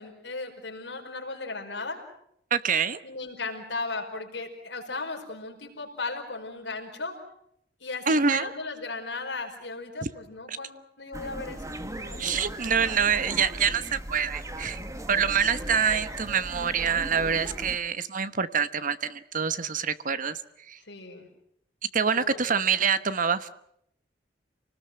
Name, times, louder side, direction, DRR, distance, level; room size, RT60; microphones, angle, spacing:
voice 1, 0.0-2.0 3.0-7.1 7.8-11.6 11.9-12.4 20.8-21.3 22.0-22.9, left 3 dB, 70° left, 1 dB, 5.1 m, -36 dB
voice 2, 2.5-3.0 8.1-8.5 10.5-10.6 12.2-14.8 15.1-20.4 20.7-20.8 21.9-23.5, right 6 dB, 45° right, 13 dB, 1.1 m, -26 dB
sound 1, 11.1-17.8, right 1 dB, 20° right, 1.4 m, -38 dB
28.5 x 19.5 x 7.7 m, 0.74 s
head